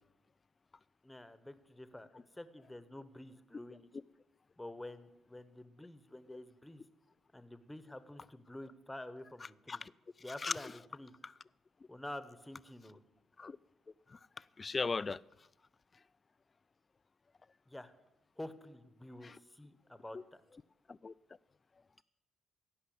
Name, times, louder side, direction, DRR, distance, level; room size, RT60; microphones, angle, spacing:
voice 1, 1.0-2.1 2.3-3.9 4.6-6.8 7.3-9.8 10.2-11.1 11.9-13.0 17.7-17.9 18.4-20.4, left 1 dB, 10° left, 1.0 m, -49 dB
voice 2, 10.3-10.7 11.2-11.3 13.4-13.6 14.1-14.2 14.6-15.2 19.2-19.4 20.1-20.2 20.9-21.1, left 4 dB, 30° left, 0.3 m, -38 dB
16.5 x 5.7 x 8.5 m
cardioid pair, 90°, 0 cm